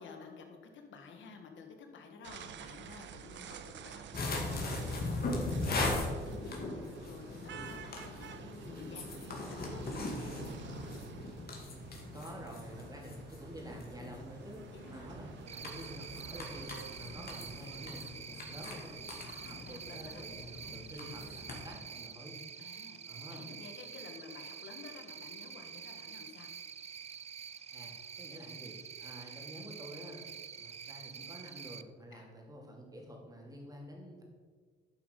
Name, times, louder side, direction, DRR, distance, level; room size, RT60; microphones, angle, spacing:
voice 1, 0.0-11.0 14.7-15.1 17.1-17.2 19.2-20.2 22.6-26.5 32.1-32.3, left 4 dB, 70° left, 4 dB, 1.7 m, -52 dB
sound 1, 2.2-17.9, right 8 dB, 65° right, 0.7 m, -50 dB
sound 2, 4.1-21.7, left 2 dB, 50° left, 2.3 m, -40 dB
voice 2, 12.1-19.1 19.7-22.3 23.0-23.4 27.7-34.2, equal, 20° right, -1 dB, 2.9 m, -49 dB
Cricket, 15.5-31.8, right 7 dB, 35° right, 0.4 m, -47 dB
11.0 x 5.7 x 5.3 m, 1.6 s
cardioid pair, 90°, 20 cm